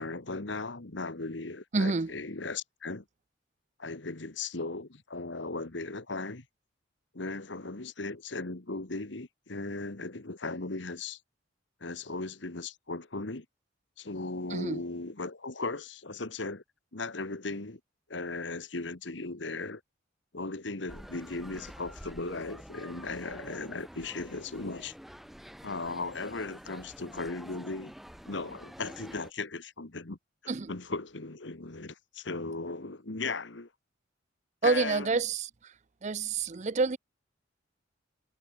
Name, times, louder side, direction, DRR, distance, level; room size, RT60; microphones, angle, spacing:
voice 1, 0.0-3.0 3.8-6.4 7.1-11.2 11.8-13.4 14.0-16.6 16.9-17.8 18.1-19.8 20.3-24.9 25.6-27.9 28.3-30.2 30.4-33.7 34.6-35.1, left 3 dB, 65° left, 1.5 m, -37 dB
voice 2, 1.7-2.1 14.5-14.8 30.5-30.7 34.6-35.7 36.0-37.0, right 4 dB, 35° right, 0.6 m, -28 dB
sound 1, 20.9-29.3, equal, ahead, 2.7 m, -48 dB
head